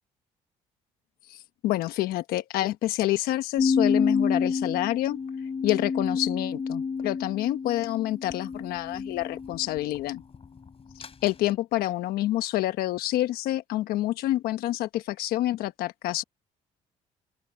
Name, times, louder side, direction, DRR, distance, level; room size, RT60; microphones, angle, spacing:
voice 1, 1.3-5.2 5.6-10.2 11.0-16.2, left 15 dB, 80° left, 1.2 m, -28 dB
sound 1, 3.6-9.9 11.0-11.3, left 5 dB, 40° left, 4.3 m, -29 dB
open air
supercardioid pair, 70°, 16 cm